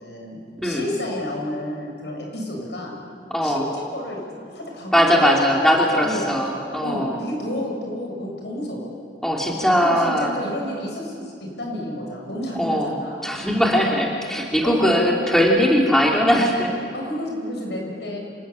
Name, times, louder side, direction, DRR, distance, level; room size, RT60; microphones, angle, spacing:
voice 1, 0.0-3.0 3.4-6.3 6.8-8.9 9.8-13.2 14.6-14.9 16.9-18.2, left 1 dB, 75° left, 0 dB, 7.4 m, -31 dB
voice 2, 3.3-3.6 4.9-7.2 9.2-10.3 12.5-12.9 13.2-16.7, equal, ahead, -2 dB, 2.9 m, -20 dB
27.5 x 20.5 x 8.8 m, 2.4 s
head